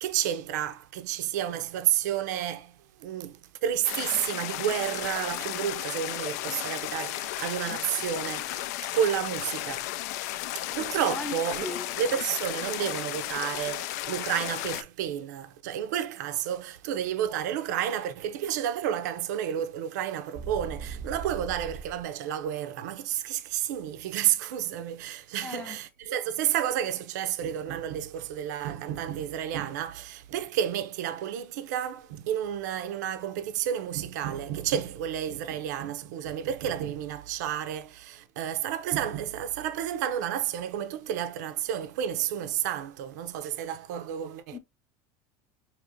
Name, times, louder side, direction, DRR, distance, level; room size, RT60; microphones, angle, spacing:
voice 1, 0.0-8.6 8.9-9.9 10.5-11.7 12.0-44.6, right 10 dB, 85° right, 0.5 m, -31 dB
sound 1, 3.8-14.8, left 15 dB, 75° left, 0.3 m, -34 dB
Wind instrument woodwind instrument, 5.3-9.9, left 10 dB, 55° left, 0.7 m, -52 dB
voice 2, 11.1-11.9 25.4-25.8 44.5-44.6, left 3 dB, 10° left, 0.6 m, -37 dB
sound 2, 20.3-22.1, right 5 dB, 30° right, 0.5 m, -39 dB
5.1 x 2.9 x 2.5 m
supercardioid pair, 155°, 9 cm